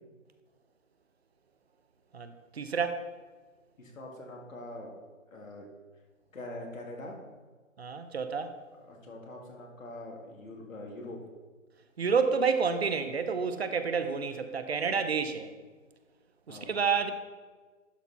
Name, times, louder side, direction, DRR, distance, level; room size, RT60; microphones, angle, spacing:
voice 1, 2.1-3.1 7.8-8.5 12.0-15.5 16.5-17.1, right 5 dB, 50° right, 9 dB, 0.7 m, -29 dB
voice 2, 3.8-4.9 5.3-5.7 6.3-7.2 8.9-11.2 16.5-16.8, left 1 dB, 75° left, 0 dB, 2.3 m, -43 dB
11.5 x 4.4 x 4.2 m, 1.4 s
hypercardioid pair, 165°, 40 cm